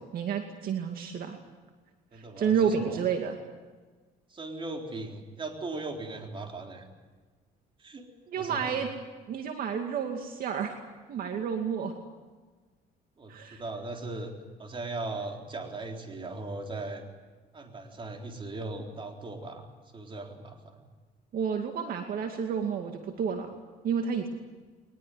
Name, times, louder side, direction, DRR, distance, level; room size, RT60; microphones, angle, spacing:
voice 1, 0.0-1.4 2.1-3.4 8.3-8.9 9.3-10.8 11.1-11.9 13.3-13.6 21.3-23.5 23.8-24.3, right 7 dB, 60° right, 4 dB, 2.4 m, -30 dB
voice 2, 2.1-3.0 4.3-6.9 7.8-8.1 8.3-8.7 13.2-14.3 14.6-17.0 17.5-20.8, right 2 dB, 30° right, 3 dB, 4.0 m, -38 dB
22.0 x 20.5 x 9.5 m, 1.3 s
cardioid pair, 110°, 17 cm